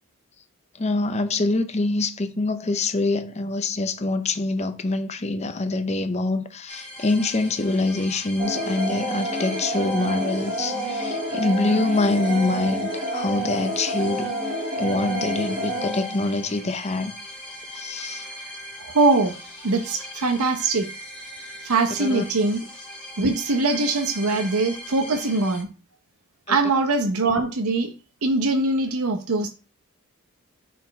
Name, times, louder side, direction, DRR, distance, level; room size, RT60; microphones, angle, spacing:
voice 1, 0.8-14.3 14.8-17.1 17.8-18.2 22.0-22.2 26.5-26.6, left 2 dB, 30° left, 0.6 m, -25 dB
sound 1, 6.7-25.6, equal, 5° left, 1.6 m, -40 dB
sound 2, 8.4-16.4, equal, 25° right, 1.3 m, -29 dB
voice 2, 18.8-20.9 21.6-22.7 23.2-25.7 26.5-27.9 28.2-29.5, right 3 dB, 80° right, 0.8 m, -22 dB
6.1 x 4.2 x 4.3 m
head